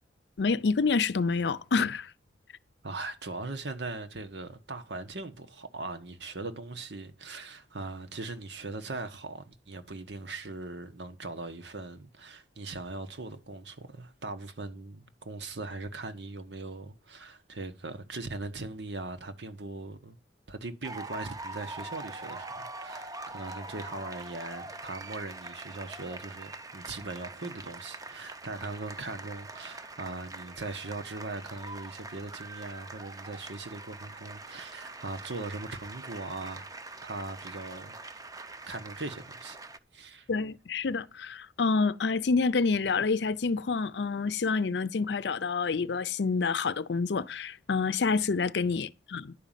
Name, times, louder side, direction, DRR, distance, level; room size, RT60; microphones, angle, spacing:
voice 1, 0.4-2.1 40.3-49.3, left 4 dB, 70° left, 0.5 m, -28 dB
voice 2, 2.8-20.2 20.5-36.7 37.0-38.0 38.7-39.6 39.9-40.3, right 3 dB, 80° right, 1.3 m, -40 dB
sound 1, 20.8-39.8, right 2 dB, 20° right, 0.6 m, -43 dB
10.5 x 5.2 x 7.4 m
head